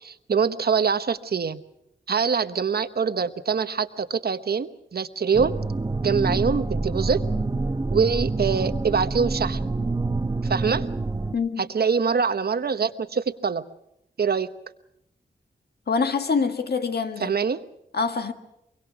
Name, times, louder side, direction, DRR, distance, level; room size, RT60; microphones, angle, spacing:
voice 1, 0.0-1.6 2.1-5.5 6.0-7.2 7.9-9.6 10.4-10.8 11.6-13.6 14.2-14.5 17.2-17.6, right 6 dB, 65° right, 1.0 m, -24 dB
sound 1, 5.3-11.3, right 3 dB, 20° right, 0.9 m, -27 dB
voice 2, 15.9-17.3 17.9-18.3, left 5 dB, 70° left, 1.6 m, -25 dB
24.0 x 23.5 x 5.9 m
wide cardioid pair, 115°, 17 cm